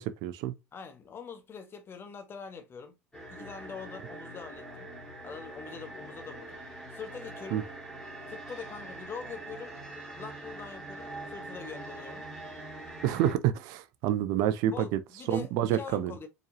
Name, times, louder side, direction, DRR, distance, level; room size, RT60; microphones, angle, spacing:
voice 1, 0.0-0.5 7.5-7.6 13.0-15.0 15.3-16.1, right 11 dB, 50° right, 0.5 m, -28 dB
voice 2, 0.7-2.9 3.3-4.9 5.2-6.6 6.9-7.6 8.3-9.7 10.1-12.3 14.7-16.3, left 6 dB, 30° left, 1.0 m, -43 dB
sound 1, 3.1-13.4, right 2 dB, 10° left, 1.9 m, -43 dB
4.5 x 2.9 x 2.8 m
figure-of-eight pair, 75°, 8 cm